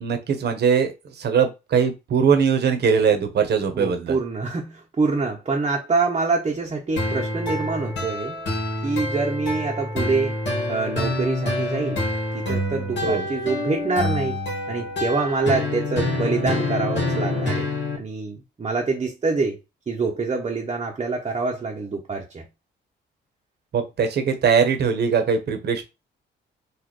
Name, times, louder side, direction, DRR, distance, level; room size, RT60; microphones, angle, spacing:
voice 1, 0.0-4.2 13.0-13.2 23.7-25.8, right 6 dB, 55° right, 1.0 m, -21 dB
voice 2, 3.7-8.4 8.8-10.4 10.7-12.1 12.3-14.4 14.7-17.7 18.0-19.6 19.9-22.5, right 4 dB, 30° right, 0.9 m, -25 dB
sound 1, 7.0-18.0, left 2 dB, 65° left, 1.9 m, -26 dB
4.2 x 2.5 x 3.1 m
cardioid pair, 90°, 20 cm